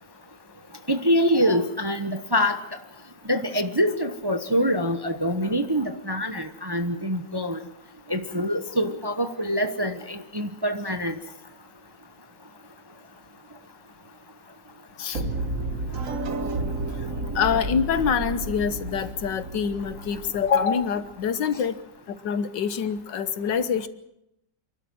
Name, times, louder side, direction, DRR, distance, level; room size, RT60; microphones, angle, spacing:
voice 1, 0.9-2.6 3.3-7.6 8.1-11.1 21.5-21.6, equal, 15° right, 7 dB, 0.9 m, -25 dB
sound 1, 15.1-21.1, right 2 dB, 45° right, 1.7 m, -31 dB
voice 2, 17.4-21.8 22.1-23.9, left 7 dB, 75° left, 12 dB, 1.7 m, -25 dB
27.5 x 12.5 x 9.2 m, 0.83 s
omnidirectional pair, 2.0 m